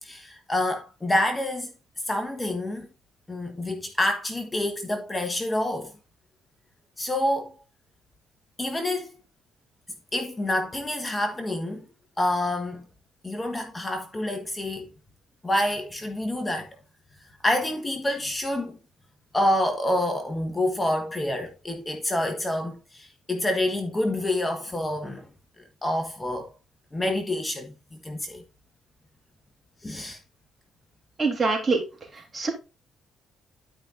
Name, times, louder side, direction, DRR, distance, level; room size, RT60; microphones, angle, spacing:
voice 1, 0.0-1.7 2.1-2.9 3.3-5.9 7.0-7.6 8.6-9.1 10.1-11.9 12.2-12.9 13.2-14.9 15.4-16.7 17.4-18.8 19.3-25.3 25.6-26.5 26.9-27.7 28.0-28.4 29.8-30.2, left 1 dB, 15° left, 1.4 m, -27 dB
voice 2, 31.2-31.8 32.3-32.5, right 4 dB, 30° right, 3.4 m, -23 dB
12.0 x 5.2 x 2.6 m
cardioid pair, 90°, 0 cm